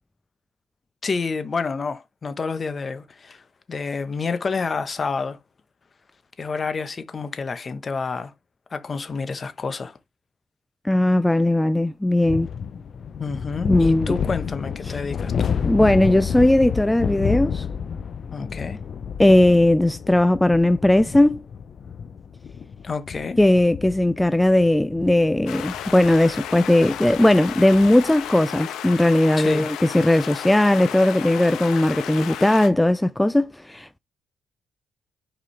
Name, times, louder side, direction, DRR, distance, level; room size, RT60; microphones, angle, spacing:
voice 1, 1.0-3.4 3.7-5.4 6.4-8.3 8.7-10.0 13.2-15.5 18.3-18.8 22.8-23.4 29.4-29.7, left 4 dB, 35° left, 1.1 m, -28 dB
voice 2, 10.8-12.5 13.7-14.1 14.8-15.0 15.6-17.7 19.2-21.4 23.4-34.0, left 1 dB, 10° left, 0.3 m, -18 dB
sound 1, 12.2-28.0, left 7 dB, 55° left, 0.6 m, -30 dB
sound 2, 25.5-32.7, left 10 dB, 85° left, 1.2 m, -33 dB
6.8 x 4.9 x 3.3 m
cardioid pair, 90°, 0 cm